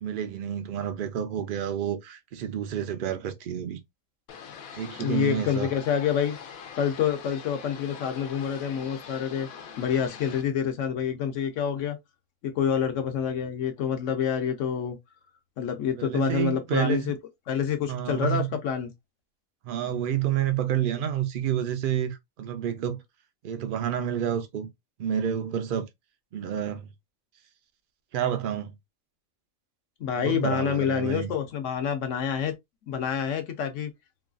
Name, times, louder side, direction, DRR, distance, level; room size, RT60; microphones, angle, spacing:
voice 1, 0.0-3.8 4.8-5.7 16.0-17.1 17.9-18.5 19.6-23.0 23.4-24.7 25.0-25.8 26.3-26.9 28.1-28.7 30.1-31.3, right 9 dB, 65° right, 0.5 m, -29 dB
sound 1, 4.3-10.4, left 7 dB, 85° left, 1.1 m, -43 dB
voice 2, 5.0-6.4 6.8-9.5 9.8-12.0 12.4-15.0 15.6-17.2 17.5-18.9 30.0-32.5 32.9-33.9, left 8 dB, 65° left, 1.0 m, -27 dB
3.1 x 2.3 x 2.4 m
omnidirectional pair, 1.4 m